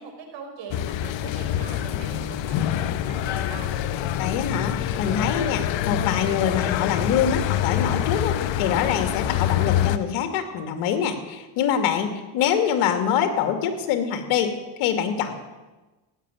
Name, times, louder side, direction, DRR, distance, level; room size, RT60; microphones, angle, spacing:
voice 1, 0.0-3.7, right 5 dB, 60° right, 3 dB, 5.1 m, -42 dB
sound 1, 0.7-10.0, left 11 dB, 60° left, 1.1 m, -26 dB
voice 2, 4.2-15.3, left 8 dB, 80° left, 7 dB, 2.5 m, -25 dB
15.5 x 10.5 x 9.0 m, 1.2 s
supercardioid pair, 95°, 50 cm